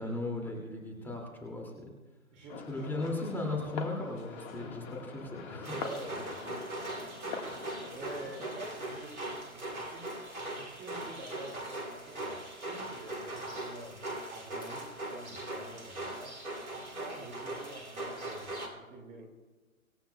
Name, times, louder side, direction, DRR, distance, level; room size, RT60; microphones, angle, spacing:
voice 1, 0.0-1.9 2.7-5.8, left 2 dB, 5° left, -1 dB, 2.4 m, -37 dB
voice 2, 2.3-2.9 5.7-6.7 7.3-7.5 7.9-10.1 10.4-14.0 14.3-19.3, right 2 dB, 15° right, 0 dB, 2.2 m, -47 dB
sound 1, 2.5-8.5, left 5 dB, 35° left, 1.7 m, -44 dB
sound 2, 5.6-18.7, right 1 dB, 80° right, 3.0 m, -40 dB
25.5 x 15.0 x 2.3 m, 1.2 s
figure-of-eight pair, 130°, 42 cm